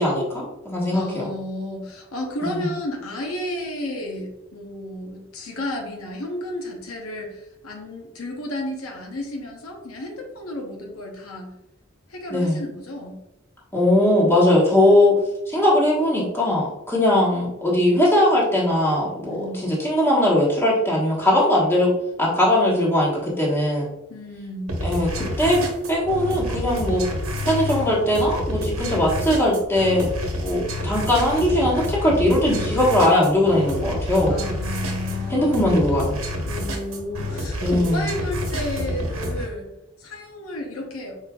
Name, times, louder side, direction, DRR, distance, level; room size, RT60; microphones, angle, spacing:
voice 1, 0.0-1.3 2.4-2.6 12.3-12.6 13.7-15.1 15.5-21.9 22.2-23.9 24.8-25.6 25.9-27.0 27.4-30.1 30.4-34.4 35.3-36.2 37.6-38.0, left 1 dB, 10° left, -6 dB, 1.2 m, -20 dB
voice 2, 0.9-11.5 12.1-13.2 19.3-19.7 24.1-24.7 34.3-35.6 36.5-39.7 40.0-41.2, left 1 dB, 80° left, 2 dB, 0.8 m, -32 dB
sound 1, 24.7-39.5, left 1 dB, 80° right, 1.0 m, -28 dB
4.9 x 4.2 x 2.3 m, 0.92 s
head